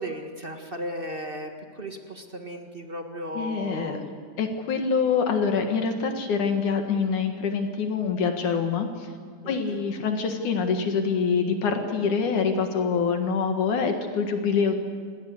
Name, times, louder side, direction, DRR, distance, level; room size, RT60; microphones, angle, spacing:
voice 1, 0.0-4.1 9.4-9.8, equal, 25° right, 4 dB, 1.2 m, -36 dB
voice 2, 3.3-4.0 4.4-8.9 9.5-14.7, left 5 dB, 70° left, 5 dB, 3.1 m, -25 dB
28.5 x 19.5 x 8.1 m, 2.1 s
omnidirectional pair, 3.6 m